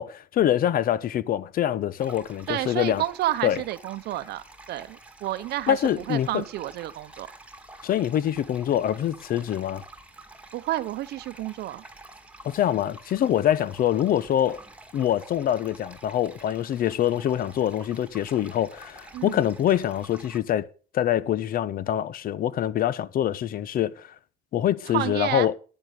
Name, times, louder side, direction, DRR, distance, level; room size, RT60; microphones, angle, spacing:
voice 1, 0.0-3.0 3.4-3.6 5.7-6.4 7.8-9.8 12.4-14.6 14.9-20.6 20.9-24.1 24.5-25.5, left 11 dB, 60° left, 0.9 m, -25 dB
sound 1, 2.0-20.4, right 2 dB, 5° right, 2.0 m, -48 dB
voice 2, 2.5-5.8 6.1-7.3 10.5-11.8 19.1-19.4 24.9-25.5, right 15 dB, 75° right, 0.8 m, -30 dB
10.5 x 8.9 x 6.7 m
cardioid pair, 110°, 17 cm